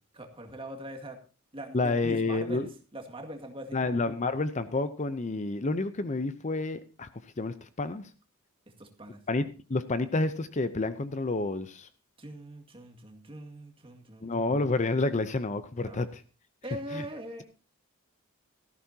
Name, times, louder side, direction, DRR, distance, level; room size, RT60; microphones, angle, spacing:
voice 1, 0.1-1.2 1.5-3.9 8.8-9.2 12.2-14.3 15.8-16.0 16.6-17.4, right 1 dB, 25° right, 3 dB, 2.0 m, -42 dB
voice 2, 1.7-2.7 3.7-7.1 7.4-8.0 9.3-9.4 9.7-11.9 14.2-16.2 16.9-17.0, left 3 dB, 35° left, 12 dB, 0.6 m, -29 dB
17.0 x 14.0 x 2.8 m, 0.33 s
head